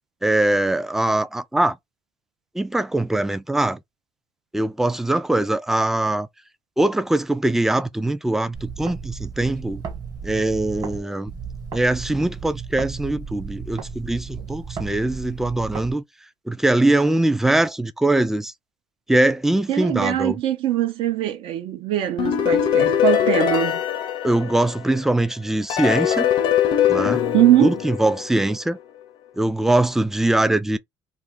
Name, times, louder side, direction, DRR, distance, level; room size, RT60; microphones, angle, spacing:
voice 1, 0.2-1.8 2.6-3.8 4.5-6.3 6.8-9.8 10.2-11.3 11.7-16.0 16.5-18.5 19.1-20.4 24.2-26.3 26.9-27.2 27.6-28.8 29.4-30.8, right 1 dB, 5° right, 0.3 m, -22 dB
sound 1, 8.5-11.0 11.3-15.9, right 6 dB, 40° right, 1.1 m, -34 dB
voice 2, 19.7-23.8 27.3-27.7, right 12 dB, 70° right, 0.6 m, -21 dB
sound 2, 22.2-25.0 25.7-28.5, left 10 dB, 60° left, 0.5 m, -21 dB
2.5 x 2.4 x 3.5 m
cardioid pair, 150°, 9 cm